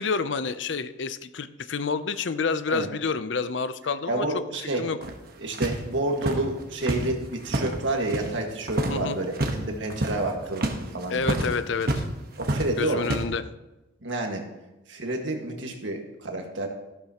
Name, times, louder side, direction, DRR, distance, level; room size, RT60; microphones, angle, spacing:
voice 1, 0.0-4.3 4.8-5.0 8.9-9.2 11.1-12.0 12.8-13.5, left 5 dB, 70° left, 13 dB, 0.6 m, -28 dB
voice 2, 4.1-4.8 5.4-11.6 12.4-13.1 14.0-14.4 14.9-16.7, right 2 dB, 70° right, 2 dB, 1.7 m, -29 dB
sound 1, 5.0-8.4 8.6-9.0 9.3-9.6 9.9-12.1 12.3-13.2, right 1 dB, 50° right, 1.2 m, -29 dB
13.5 x 12.0 x 3.0 m, 1.0 s
head